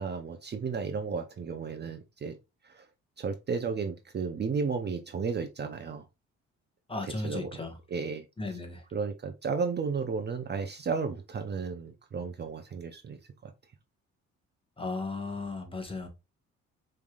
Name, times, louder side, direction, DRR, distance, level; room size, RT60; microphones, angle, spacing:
voice 1, 0.0-2.4 2.6-2.8 3.2-6.0 7.0-7.6 7.9-8.6 8.9-13.5, right 5 dB, 35° right, 0.6 m, -33 dB
voice 2, 6.9-7.7 8.4-8.8 14.8-16.1, left 3 dB, 20° left, 1.2 m, -35 dB
5.2 x 3.3 x 2.4 m
cardioid pair, 90°, 30 cm